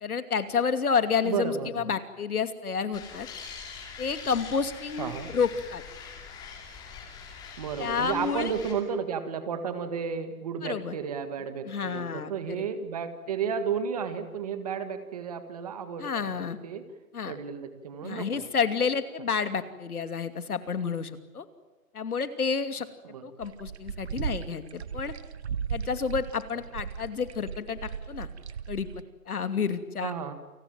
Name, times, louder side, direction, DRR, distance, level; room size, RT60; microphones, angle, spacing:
voice 1, 0.0-3.3 4.0-5.8 7.8-8.5 10.6-11.0 11.6-12.3 16.0-16.6 17.1-17.4 18.0-21.4 21.9-22.9 23.2-25.1 25.7-28.3 28.7-28.9 29.3-30.1, left 6 dB, 75° left, 10 dB, 2.8 m, -30 dB
voice 2, 1.2-1.9 5.0-5.3 7.6-16.3 16.6-16.9 17.3-18.5 23.0-23.3 30.0-30.3, right 6 dB, 25° right, 10 dB, 1.7 m, -33 dB
sound 1, 2.9-8.7, left 6 dB, 10° left, 2.6 m, -44 dB
sound 2, 23.4-29.0, right 7 dB, 45° right, 1.1 m, -36 dB
29.0 x 19.0 x 9.1 m, 1.2 s
hypercardioid pair, 170°, 44 cm